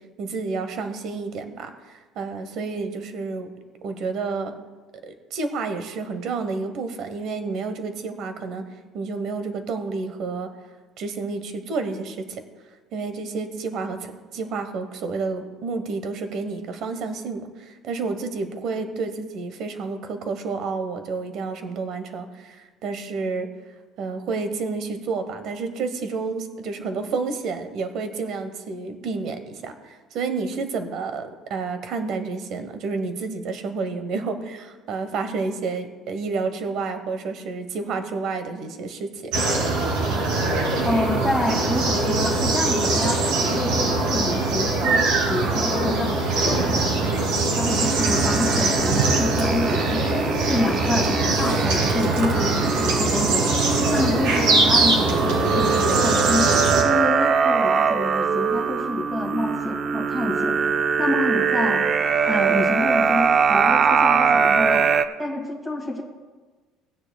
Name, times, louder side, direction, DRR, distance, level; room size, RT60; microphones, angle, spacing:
voice 1, 0.2-1.7 2.1-3.5 3.8-4.5 5.0-8.6 8.9-10.5 11.0-12.4 12.9-23.5 24.0-39.3, right 4 dB, 50° right, 8 dB, 1.1 m, -30 dB
sound 1, 39.3-56.8, right 3 dB, 75° right, 2.9 m, -22 dB
voice 2, 40.8-45.0 45.3-46.1 46.5-47.2 47.6-50.1 50.5-53.6 53.9-56.5 56.8-60.6 61.0-61.8 62.3-64.9 65.2-66.0, left 2 dB, 5° right, -2 dB, 2.2 m, -27 dB
sound 2, 47.8-65.1, right 6 dB, 25° right, 0.4 m, -23 dB
17.5 x 9.7 x 2.3 m, 1.3 s
cardioid pair, 175°, 0 cm